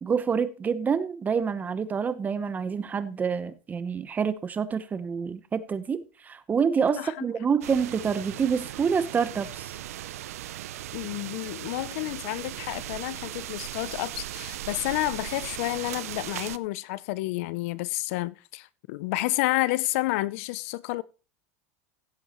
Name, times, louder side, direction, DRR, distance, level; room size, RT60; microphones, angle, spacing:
voice 1, 0.0-9.7, right 6 dB, 20° right, 1.0 m, -27 dB
voice 2, 6.9-7.2 10.9-21.0, left 18 dB, 65° left, 0.6 m, -30 dB
sound 1, 7.6-16.6, right 14 dB, 90° right, 0.6 m, -38 dB
16.5 x 8.0 x 3.1 m
supercardioid pair, 125°, 8 cm